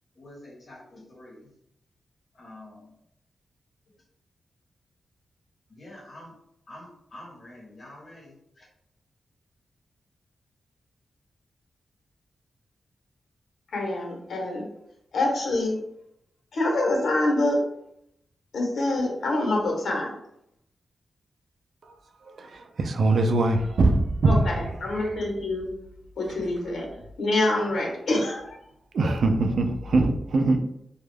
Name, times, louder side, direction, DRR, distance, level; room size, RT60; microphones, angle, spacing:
voice 1, 0.1-1.5 2.3-2.9 5.7-6.3 6.7-8.7, left 1 dB, 45° left, -6 dB, 0.9 m, -47 dB
voice 2, 13.7-14.6 15.1-15.8 16.5-17.6 18.5-20.1 24.2-25.7 26.2-26.9 27.2-28.6, left 2 dB, 75° left, -1 dB, 0.8 m, -26 dB
voice 3, 22.8-24.4 28.9-30.7, right 2 dB, 65° right, 5 dB, 0.3 m, -22 dB
2.2 x 2.0 x 3.2 m, 0.77 s
wide cardioid pair, 130°, 0 cm